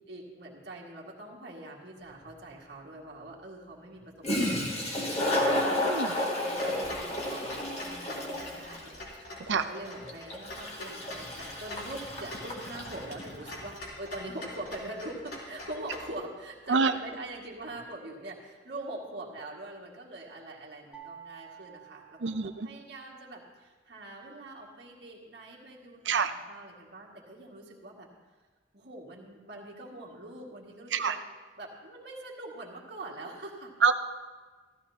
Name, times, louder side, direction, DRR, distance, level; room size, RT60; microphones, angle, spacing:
voice 1, 0.1-5.7 6.1-28.1 28.7-31.2 31.6-33.7, right 1 dB, 65° right, -3 dB, 2.0 m, -43 dB
Toilet flush, 2.2-2.3 4.0-4.1 4.2-13.6, left 1 dB, 35° left, 1.9 m, -32 dB
voice 2, 5.8-6.1 9.5-9.6 16.7-16.9 22.2-22.7 26.1-26.3 30.9-31.2 33.8-33.9, right 5 dB, 80° right, 9 dB, 0.6 m, -25 dB
Clock, 6.5-16.1, left 1 dB, 60° left, 3.3 m, -44 dB
sound 1, 20.9-23.1, right 8 dB, 5° right, 1.2 m, -50 dB
15.5 x 13.5 x 2.9 m, 1.4 s
head